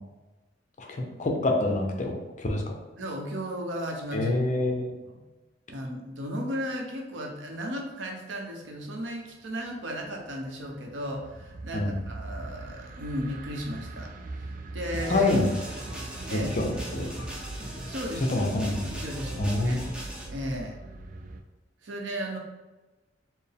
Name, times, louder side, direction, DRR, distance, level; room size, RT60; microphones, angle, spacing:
voice 1, 0.8-2.7 4.1-4.9 11.7-11.9 15.1-15.5 16.3-17.1 18.3-18.7 19.4-19.8, left 2 dB, 40° left, 2 dB, 0.6 m, -26 dB
voice 2, 3.0-4.4 5.0-5.2 5.7-15.3 16.3-16.5 17.8-18.4 18.7-19.8 20.3-20.8 21.8-22.4, equal, 80° right, 1 dB, 0.7 m, -35 dB
sound 1, 9.7-21.4, right 2 dB, 45° right, 0.3 m, -40 dB
sound 2, 14.9-20.3, equal, 5° right, 0.6 m, -39 dB
4.4 x 2.0 x 3.4 m, 1.2 s
head